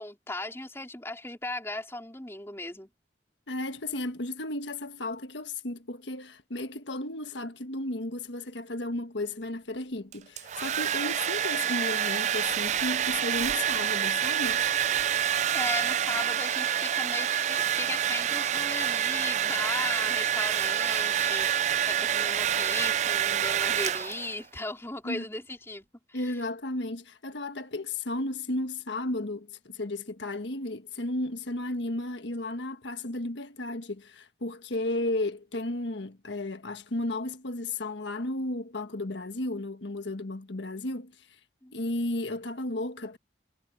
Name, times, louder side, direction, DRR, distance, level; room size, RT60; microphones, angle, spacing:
voice 1, 0.0-2.9 15.5-26.4 41.6-41.8, left 2 dB, 15° left, 3.6 m, -37 dB
voice 2, 3.5-14.6 25.0-25.3 26.1-41.1 41.7-43.2, left 2 dB, 80° left, 1.4 m, -34 dB
Domestic sounds home sounds, 10.1-24.4, right 9 dB, 40° right, 0.3 m, -27 dB
head